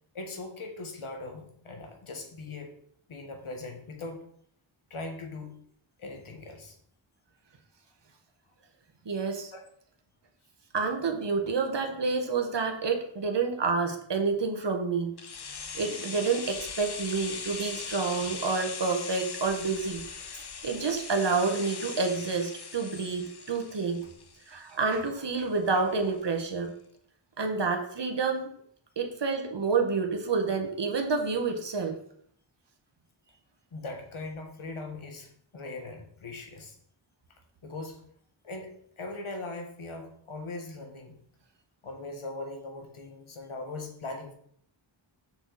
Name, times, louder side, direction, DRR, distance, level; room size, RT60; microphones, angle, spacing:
voice 1, 0.1-2.8 3.1-4.2 4.9-5.6 6.0-6.8 9.5-9.6 33.7-36.8 37.6-38.0 38.4-41.2 41.8-44.3, left 2 dB, 85° left, 3 dB, 1.6 m, -40 dB
voice 2, 9.0-9.5 10.7-15.1 15.7-20.0 20.3-24.0 24.5-26.7 27.4-28.5 29.0-32.0, right 4 dB, 60° right, 4 dB, 1.3 m, -29 dB
sound 1, 15.2-25.0 25.3-25.4, left 5 dB, 55° left, 0.9 m, -40 dB
6.7 x 6.4 x 4.1 m, 0.64 s
wide cardioid pair, 95°, 48 cm